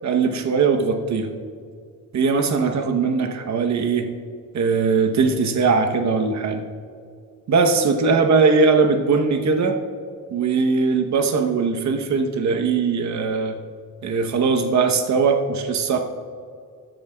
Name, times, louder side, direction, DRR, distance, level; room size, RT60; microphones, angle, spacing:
voice 1, 0.0-1.3 2.1-4.1 4.5-6.6 7.5-9.8 10.3-13.6 14.0-16.0, right 4 dB, 55° right, 5 dB, 0.9 m, -20 dB
13.5 x 10.5 x 2.3 m, 2.2 s
cardioid pair, 140°, 33 cm